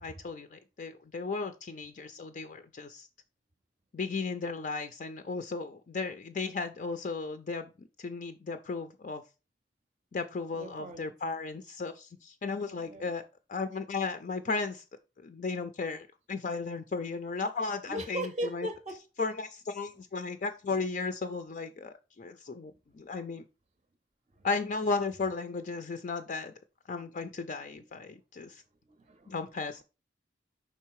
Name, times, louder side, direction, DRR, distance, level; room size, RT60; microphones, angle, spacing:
voice 1, 0.0-3.1 3.9-7.7 8.0-9.2 10.1-13.2 13.5-14.8 15.2-18.7 19.2-23.4 24.4-26.5 26.9-28.6 29.3-29.8, left 4 dB, 45° left, 0.4 m, -35 dB
voice 2, 10.5-11.1 12.6-13.1 17.9-19.0 20.7-20.8 24.4-24.5 29.0-29.3, right 1 dB, 30° right, 0.5 m, -38 dB
5.5 x 3.8 x 4.6 m
head